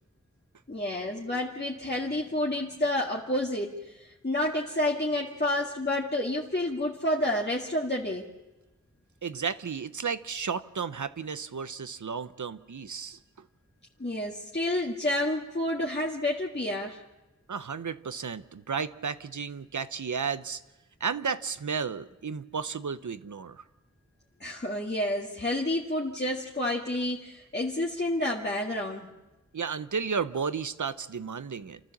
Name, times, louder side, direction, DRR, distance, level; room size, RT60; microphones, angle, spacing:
voice 1, 0.7-8.3 14.0-17.0 24.4-29.1, left 1 dB, 35° left, -3 dB, 1.9 m, -29 dB
voice 2, 9.2-13.2 17.5-20.6 21.0-23.6 29.5-31.8, right 6 dB, 85° right, 13 dB, 0.8 m, -33 dB
29.5 x 13.5 x 7.3 m, 1.1 s
wide cardioid pair, 55°, 29 cm